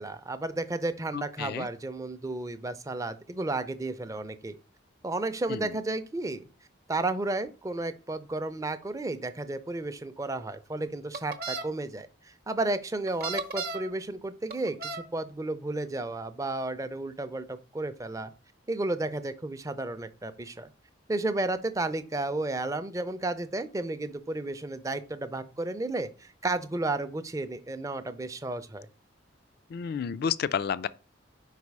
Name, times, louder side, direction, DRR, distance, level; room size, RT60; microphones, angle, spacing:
voice 1, 0.0-4.6 5.0-6.4 6.9-18.3 18.7-20.7 21.1-28.9, right 2 dB, 15° right, 0.4 m, -32 dB
sound 1, 11.1-11.6 13.1-13.9 14.5-15.1, right 3 dB, 50° right, 0.7 m, -34 dB
voice 2, 29.7-30.9, left 7 dB, 55° left, 0.3 m, -30 dB
5.2 x 4.1 x 4.7 m
head